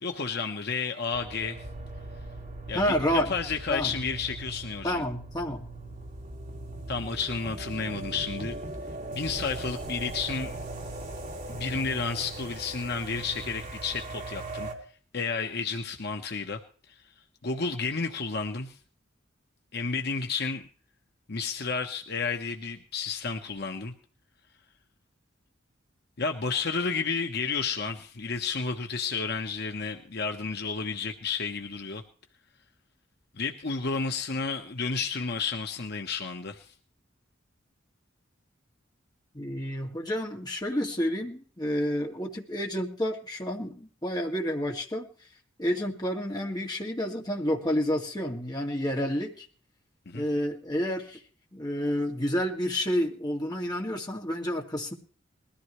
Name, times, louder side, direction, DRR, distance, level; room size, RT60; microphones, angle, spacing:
voice 1, 0.0-1.6 2.7-5.0 6.9-8.6 9.1-10.5 11.5-14.7 15.1-16.6 16.9-17.0 17.4-18.8 19.7-20.7 21.3-23.9 26.2-32.0 33.3-36.7 50.1-50.2, left 5 dB, 55° left, 5 dB, 1.1 m, -31 dB
sound 1, 1.1-14.7, right 2 dB, 40° right, 2.7 m, -39 dB
voice 2, 2.7-3.3 3.7-3.9 4.8-5.6 39.3-45.1 45.6-49.5 50.1-51.2 51.5-54.9, equal, 20° left, 0 dB, 2.3 m, -29 dB
20.5 x 14.0 x 3.2 m, 0.42 s
head